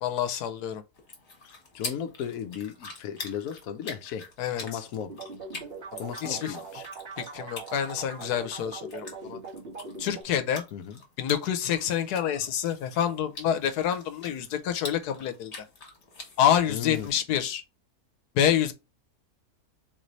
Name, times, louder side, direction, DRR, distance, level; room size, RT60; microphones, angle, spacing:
voice 1, 0.0-0.8 4.4-4.6 6.2-6.6 7.3-9.4 10.0-10.6 11.2-15.5 16.4-17.6 18.3-18.7, left 9 dB, 85° left, 1.2 m, -27 dB
sound 1, 0.9-17.1, left 3 dB, 45° left, 1.5 m, -45 dB
voice 2, 1.4-4.3 4.6-5.2 6.0-6.8 10.7-11.0 16.7-17.1, left 8 dB, 70° left, 1.0 m, -36 dB
sound 2, 5.1-10.2, right 4 dB, 40° right, 1.4 m, -41 dB
3.9 x 3.1 x 3.9 m
omnidirectional pair, 1.6 m